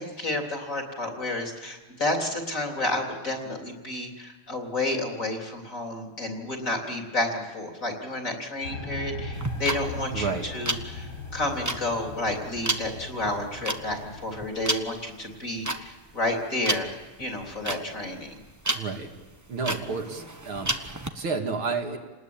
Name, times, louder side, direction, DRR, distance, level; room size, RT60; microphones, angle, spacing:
voice 1, 0.0-16.9 17.2-18.4, left 2 dB, 35° left, 1 dB, 4.0 m, -31 dB
sound 1, 8.6-14.4, left 2 dB, 50° left, 2.8 m, -38 dB
sound 2, 9.3-21.1, right 2 dB, 15° right, 0.6 m, -32 dB
voice 2, 10.1-10.5 18.7-19.1 19.5-22.0, right 4 dB, 70° right, 2 dB, 3.1 m, -31 dB
29.0 x 20.0 x 8.8 m, 1.2 s
omnidirectional pair, 2.4 m